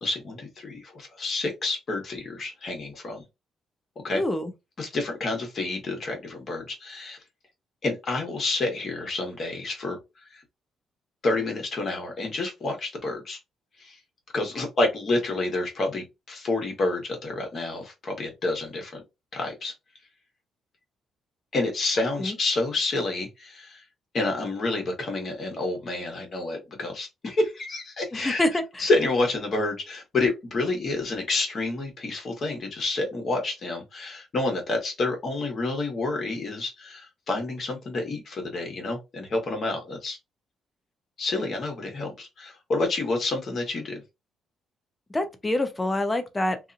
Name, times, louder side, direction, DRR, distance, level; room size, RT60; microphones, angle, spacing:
voice 1, 0.0-3.2 4.0-4.2 4.8-7.2 7.8-10.0 10.3-10.4 11.2-13.4 13.8-14.0 14.3-19.0 19.3-19.7 21.5-23.8 24.1-28.4 28.8-40.2 41.2-44.0, left 2 dB, 45° left, 1.2 m, -29 dB
voice 2, 4.1-4.5 22.2-22.4 28.1-28.9 45.1-46.6, left 1 dB, 15° left, 0.7 m, -26 dB
2.7 x 2.5 x 2.5 m
cardioid pair, 90°, 0 cm